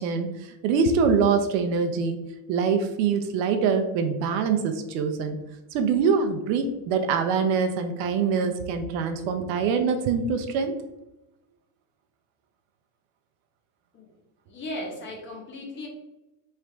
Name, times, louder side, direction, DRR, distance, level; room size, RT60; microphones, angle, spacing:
voice 1, 0.0-2.2 2.5-5.4 5.7-10.7, right 5 dB, 60° right, 6 dB, 0.6 m, -24 dB
voice 2, 14.5-15.9, left 1 dB, 25° left, 0 dB, 0.7 m, -36 dB
3.2 x 2.5 x 4.4 m, 0.96 s
cardioid pair, 170°, 44 cm